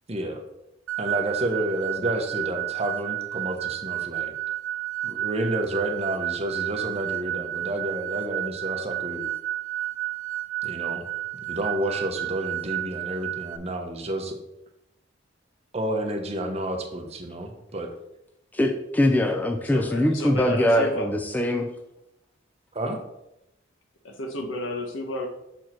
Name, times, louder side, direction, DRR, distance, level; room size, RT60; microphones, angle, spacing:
voice 1, 0.1-0.4 1.0-4.3 5.0-9.3 10.6-11.0 11.5-14.3 15.7-17.9 22.7-23.0, right 1 dB, 35° right, 4 dB, 0.9 m, -30 dB
sound 1, 0.9-13.6, right 14 dB, 85° right, 0.5 m, -31 dB
voice 2, 18.5-21.7, left 1 dB, 10° left, 3 dB, 0.4 m, -22 dB
voice 3, 19.6-21.1 24.0-25.3, left 1 dB, 80° left, 3 dB, 1.2 m, -31 dB
6.2 x 4.6 x 4.4 m, 0.87 s
head